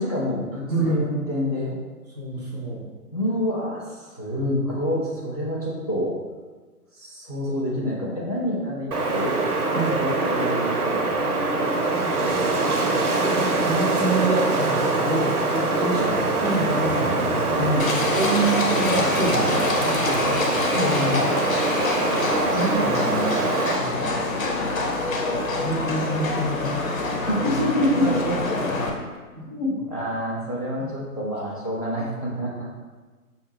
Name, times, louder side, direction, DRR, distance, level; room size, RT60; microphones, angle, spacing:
voice 1, 0.0-1.8 3.1-6.1 6.9-11.5 15.8-16.2 17.6-18.0 20.7-21.3 27.3-28.1 29.4-32.7, left 1 dB, 25° left, -6 dB, 0.4 m, -27 dB
voice 2, 0.7-1.0 2.1-2.8 9.7-10.0 13.6-16.0 16.4-17.3 18.1-20.4 22.4-23.5 23.7-24.5 25.5-26.8 28.0-28.9 29.3-29.5, right 2 dB, 25° right, -3 dB, 0.5 m, -27 dB
Wind, 8.9-23.8, right 2 dB, 70° right, 0.7 m, -23 dB
Livestock farm animals working animals, 17.8-28.9, left 2 dB, 60° left, 0.9 m, -26 dB
5.4 x 2.3 x 3.2 m, 1.3 s
figure-of-eight pair, 130°, 46 cm